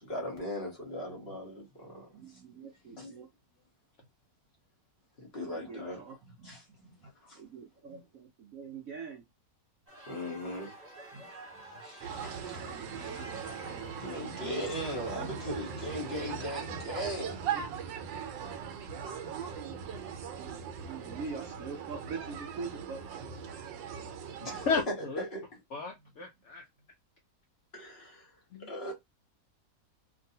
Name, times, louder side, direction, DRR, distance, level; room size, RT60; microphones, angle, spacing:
voice 1, 0.0-2.1 3.0-3.1 5.2-6.0 6.4-6.6 7.2-7.4 10.1-10.7 11.8-12.6 13.0-13.3 14.0-17.4 24.4-25.4 27.7-28.3 28.6-28.9, equal, 40° left, 1.2 m, -38 dB
voice 2, 2.1-3.3 5.5-7.1 7.3-9.3 11.1-11.3 12.1-13.9 15.1-15.4 20.3-23.4, right 5 dB, 65° right, 0.9 m, -45 dB
sound 1, 9.9-19.8, right 1 dB, 25° right, 1.1 m, -51 dB
sound 2, 12.0-24.8, right 7 dB, 85° right, 1.3 m, -40 dB
voice 3, 24.7-25.2 25.7-26.6 28.5-28.7, left 4 dB, 80° left, 0.6 m, -33 dB
2.9 x 2.6 x 2.7 m
omnidirectional pair, 1.9 m